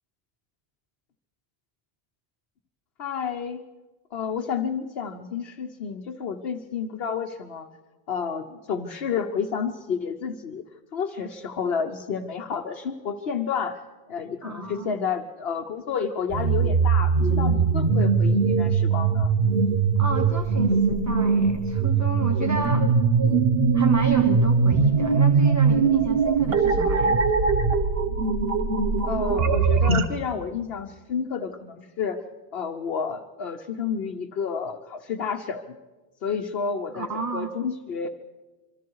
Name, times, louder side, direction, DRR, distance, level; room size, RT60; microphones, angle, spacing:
voice 1, 3.0-3.6 4.1-7.7 8.1-10.6 10.9-13.8 14.1-19.3 22.7-22.9 29.0-32.2 32.5-35.8 36.2-37.1 37.3-38.1, left 6 dB, 65° left, 3 dB, 1.1 m, -30 dB
voice 2, 14.4-14.9 18.9-19.0 20.0-22.9 23.7-27.2 36.9-37.5, right 3 dB, 15° right, 4 dB, 1.1 m, -31 dB
sound 1, 16.3-30.0, right 5 dB, 65° right, 1.3 m, -21 dB
25.5 x 24.5 x 4.7 m, 1.3 s
omnidirectional pair, 1.1 m